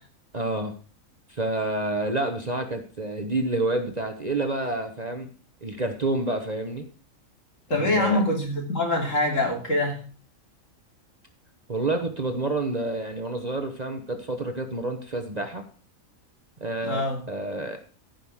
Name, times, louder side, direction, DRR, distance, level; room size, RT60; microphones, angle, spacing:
voice 1, 0.3-0.7 1.3-5.3 5.6-6.9 7.7-8.2 11.7-15.6 16.6-17.0 17.3-17.8, right 2 dB, 30° right, 6 dB, 1.0 m, -28 dB
voice 2, 7.7-10.0 16.8-17.2, left 2 dB, 60° left, 1 dB, 3.4 m, -24 dB
14.5 x 5.6 x 6.3 m, 0.40 s
omnidirectional pair, 1.5 m